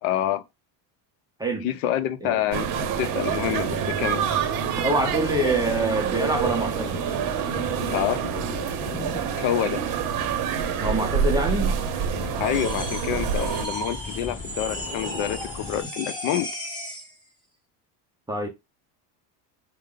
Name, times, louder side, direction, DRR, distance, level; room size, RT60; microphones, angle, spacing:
voice 1, 0.0-0.4 1.6-2.7 3.0-4.4 7.9-8.2 9.3-9.8 12.4-16.5, left 11 dB, 70° left, 0.7 m, -27 dB
sound 1, 2.5-13.7, right 8 dB, 45° right, 0.8 m, -27 dB
sound 2, 3.4-15.8, left 3 dB, 25° left, 1.8 m, -38 dB
voice 2, 4.8-7.0 10.8-11.8 18.3-18.5, right 1 dB, 10° right, 0.4 m, -25 dB
sound 3, 12.4-17.1, right 1 dB, 10° left, 1.1 m, -35 dB
4.6 x 2.1 x 3.7 m
cardioid pair, 135°, 48 cm